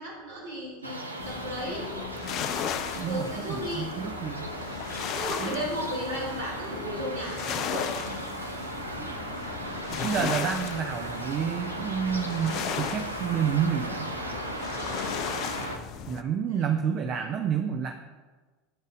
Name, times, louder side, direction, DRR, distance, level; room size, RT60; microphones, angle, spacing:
voice 1, 0.0-1.9 3.0-3.9 5.1-8.0 14.7-15.0 16.5-16.7, equal, 75° right, -5 dB, 2.1 m, -35 dB
sound 1, 0.8-15.8, right 1 dB, 90° right, 0.6 m, -36 dB
sound 2, 1.2-16.2, left 8 dB, 45° left, 0.5 m, -36 dB
voice 2, 2.9-4.5 5.4-5.7 9.0-9.2 9.9-14.1 15.8-17.9, right 8 dB, 40° right, 5 dB, 0.6 m, -30 dB
10.5 x 4.0 x 4.9 m, 1.3 s
figure-of-eight pair, 75°, 0 cm